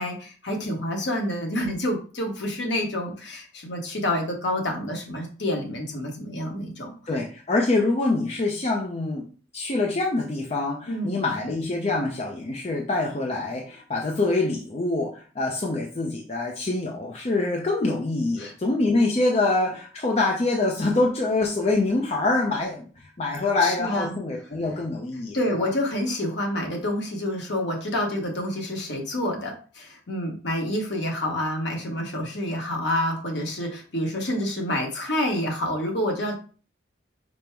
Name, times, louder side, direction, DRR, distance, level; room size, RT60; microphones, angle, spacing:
voice 1, 0.0-7.0 10.9-11.2 18.4-18.5 23.6-24.1 25.3-36.3, left 1 dB, 60° left, 1 dB, 1.1 m, -28 dB
voice 2, 7.1-9.3 9.5-25.4, left 2 dB, 35° left, 0 dB, 0.5 m, -25 dB
5.2 x 2.1 x 4.4 m, 0.39 s
head